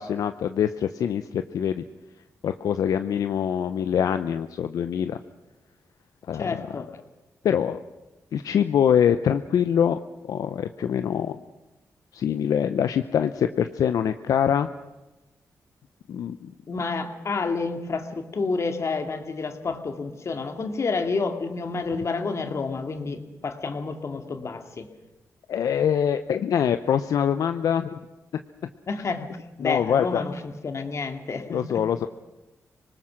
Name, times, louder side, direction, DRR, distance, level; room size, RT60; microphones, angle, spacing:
voice 1, 0.0-1.8 2.4-5.2 6.3-6.7 7.4-7.8 8.3-10.0 10.2-11.4 12.1-14.7 16.1-16.5 25.5-28.0 29.6-30.2 31.5-32.1, left 8 dB, 80° left, 10 dB, 0.7 m, -24 dB
voice 2, 6.3-6.9 16.7-24.9 28.9-29.3 29.6-32.1, left 4 dB, 55° left, 6 dB, 2.4 m, -29 dB
26.0 x 19.5 x 6.4 m, 1.1 s
cardioid pair, 65°, 6 cm